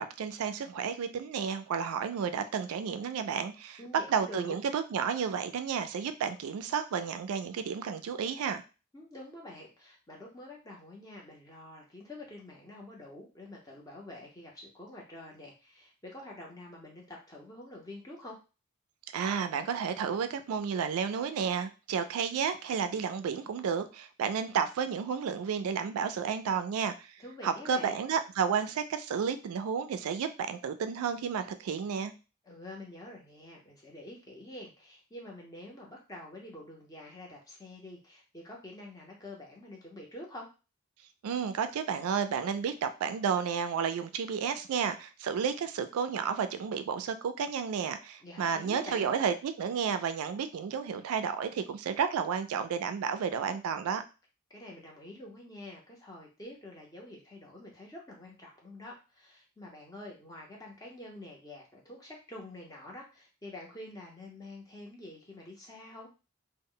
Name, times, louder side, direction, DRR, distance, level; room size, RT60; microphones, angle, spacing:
voice 1, 0.0-3.8 4.1-8.6 19.1-27.1 27.4-32.1 41.2-54.0, right 6 dB, 90° right, 10 dB, 0.3 m, -32 dB
voice 2, 3.8-4.6 8.9-18.4 27.2-28.0 32.4-40.5 48.2-49.1 54.5-66.1, left 1 dB, 15° left, -2 dB, 0.6 m, -47 dB
2.1 x 2.0 x 3.7 m, 0.31 s
head